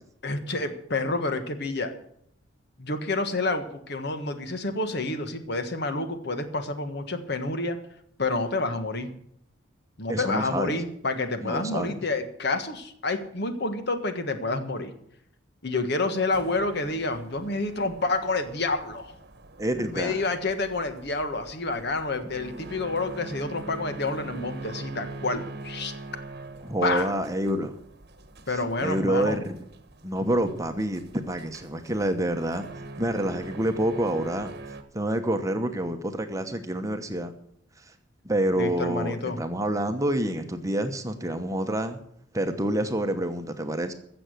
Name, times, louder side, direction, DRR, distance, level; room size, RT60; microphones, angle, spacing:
voice 1, 0.2-1.9 2.8-7.8 8.2-9.1 10.0-14.9 15.6-19.1 19.9-25.9 26.8-27.1 28.5-29.4 38.6-39.4, left 3 dB, 55° left, 8 dB, 1.5 m, -29 dB
voice 2, 10.1-10.8 11.4-12.0 19.6-20.2 26.6-27.7 28.8-29.6 30.0-32.7 33.0-37.3 37.8-37.9 38.2-42.0 42.3-43.9, right 1 dB, 15° right, 7 dB, 1.0 m, -27 dB
sound 1, 16.3-34.8, right 2 dB, 55° right, 1.2 m, -43 dB
15.0 x 7.0 x 7.8 m, 0.70 s
head